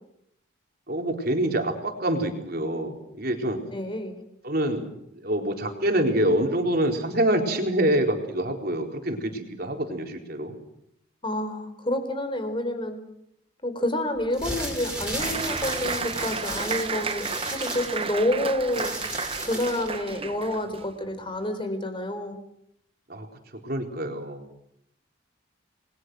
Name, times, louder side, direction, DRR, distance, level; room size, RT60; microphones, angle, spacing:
voice 1, 0.9-3.6 4.4-4.8 5.2-10.6 23.1-23.3 23.6-24.4, right 1 dB, 50° right, 3 dB, 4.2 m, -26 dB
voice 2, 3.7-4.1 11.2-13.0 13.6-18.9 19.5-22.3, left 1 dB, 25° left, 8 dB, 4.0 m, -28 dB
sound 1, 14.2-20.0, right 1 dB, 5° right, 6.3 m, -34 dB
Applause, 15.2-20.9, right 5 dB, 25° right, 0.9 m, -32 dB
29.0 x 22.0 x 6.4 m, 0.75 s
head